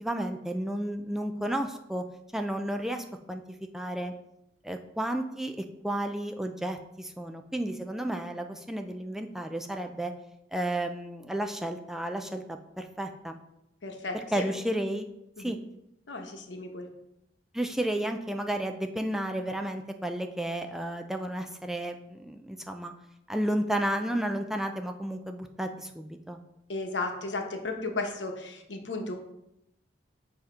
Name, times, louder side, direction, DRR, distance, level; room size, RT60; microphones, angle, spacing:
voice 1, 0.0-2.0 2.3-4.1 4.6-10.1 10.5-13.4 14.3-15.1 15.4-15.6 17.5-22.9 23.3-26.4, right 1 dB, ahead, 5 dB, 0.3 m, -32 dB
voice 2, 13.8-14.4 15.4-15.5 16.1-16.9 26.7-29.2, left 3 dB, 80° left, 3 dB, 0.9 m, -34 dB
7.7 x 2.8 x 4.9 m, 0.85 s
head